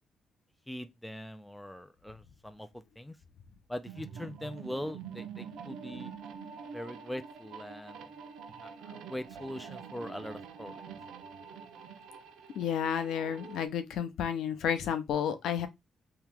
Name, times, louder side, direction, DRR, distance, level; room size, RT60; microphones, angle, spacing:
voice 1, 0.7-3.2 3.7-6.1 6.7-8.1 8.6-10.8, left 1 dB, 5° left, 0.4 m, -42 dB
sound 1, 3.8-13.7, right 6 dB, 85° right, 0.5 m, -46 dB
voice 2, 12.5-15.7, left 8 dB, 85° left, 0.6 m, -31 dB
2.9 x 2.9 x 3.4 m
cardioid pair, 110°, 0 cm